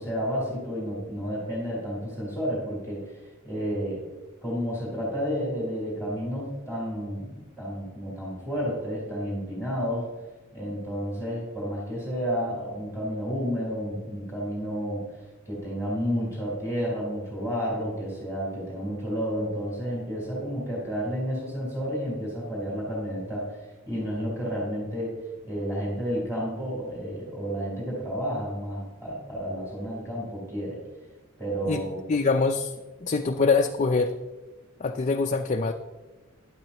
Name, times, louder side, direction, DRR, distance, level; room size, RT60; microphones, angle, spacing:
voice 1, 0.0-4.0 4.4-10.1 10.5-25.2 25.4-30.8 31.4-32.0, equal, 10° right, -7 dB, 3.9 m, -31 dB
voice 2, 32.1-32.7 33.0-34.1 34.8-35.7, left 4 dB, 35° left, 4 dB, 0.5 m, -24 dB
12.0 x 12.0 x 2.9 m, 1.2 s
head